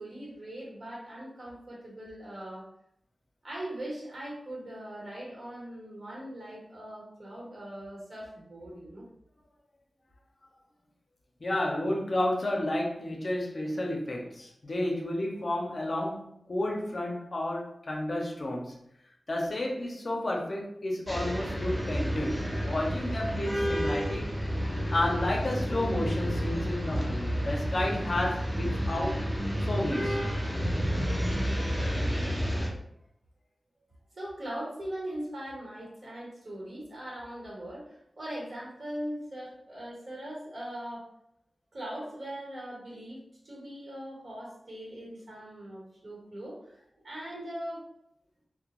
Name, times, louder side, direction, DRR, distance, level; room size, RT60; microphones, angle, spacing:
voice 1, 0.0-2.7 3.4-9.0 34.2-41.1 41.7-47.8, right 1 dB, 55° right, -5 dB, 1.1 m, -40 dB
voice 2, 11.4-18.8 19.3-24.3 24.9-29.3 29.6-30.2, left 1 dB, 45° left, -1 dB, 0.5 m, -31 dB
sound 1, 21.1-32.7, equal, 10° right, 0.5 m, -30 dB
2.2 x 2.1 x 2.9 m, 0.75 s
wide cardioid pair, 105°, 0 cm